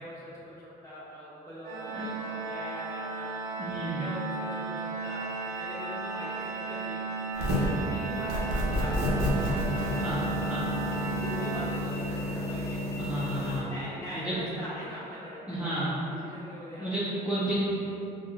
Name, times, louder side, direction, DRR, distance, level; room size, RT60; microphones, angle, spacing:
voice 1, 0.0-3.3 3.9-5.2 5.6-7.0 7.3-10.3 11.1-12.8 13.2-16.9, equal, 20° left, -10 dB, 1.3 m, -42 dB
Organ, 1.6-12.4, right 4 dB, 65° right, 0.5 m, -35 dB
voice 2, 3.6-4.0 10.0-10.2 10.5-10.6 13.0-13.7 14.1-14.3 15.5-15.9 16.8-17.6, right 1 dB, 10° right, -11 dB, 0.6 m, -32 dB
sound 1, 5.0-13.5, right 1 dB, 75° left, 1.1 m, -47 dB
sound 2, 7.3-7.8 8.3-13.6, equal, 85° right, 0.8 m, -30 dB
5.2 x 2.2 x 2.4 m, 2.8 s
cardioid pair, 110°, 17 cm